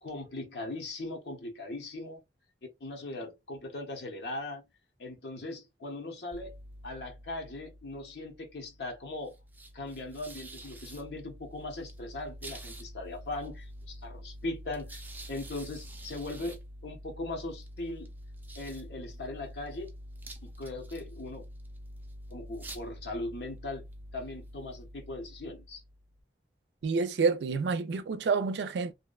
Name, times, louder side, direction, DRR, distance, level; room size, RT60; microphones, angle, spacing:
voice 1, 0.0-2.2 2.8-4.6 5.0-6.5 6.8-9.4 9.7-18.1 18.6-19.9 20.4-21.4 22.3-23.8 24.1-25.8, left 2 dB, 70° left, 0.8 m, -39 dB
sound 1, 6.3-26.2, equal, 10° right, 0.4 m, -47 dB
voice 2, 26.8-28.9, right 4 dB, 75° right, 0.4 m, -28 dB
2.7 x 2.1 x 2.3 m
head